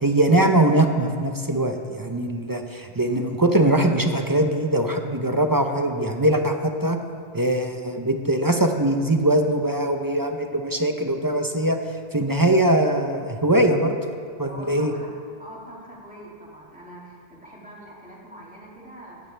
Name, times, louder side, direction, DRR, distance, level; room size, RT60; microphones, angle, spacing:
voice 1, 0.0-7.0 7.3-11.8 12.1-14.0 14.4-14.9, right 1 dB, 20° right, 5 dB, 0.6 m, -21 dB
voice 2, 14.5-15.1 15.4-19.2, right 1 dB, 5° right, -5 dB, 2.6 m, -43 dB
16.5 x 12.5 x 3.4 m, 2.3 s
omnidirectional pair, 1.3 m